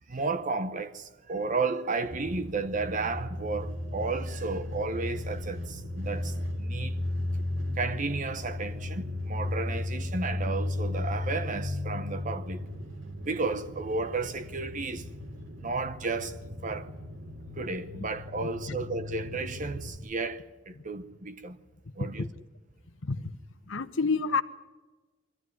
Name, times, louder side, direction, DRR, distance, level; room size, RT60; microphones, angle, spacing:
voice 1, 0.1-7.0 7.8-12.6 13.2-15.1 15.6-16.9 17.6-21.6 22.0-22.3, right 3 dB, 40° right, 0.8 m, -33 dB
sound 1, 2.1-20.0, left 1 dB, 65° right, 3.0 m, -35 dB
voice 2, 18.4-18.8 20.8-20.9 22.0-22.3 23.0-23.3 23.7-24.4, left 4 dB, 70° left, 1.0 m, -30 dB
22.5 x 14.5 x 9.5 m
head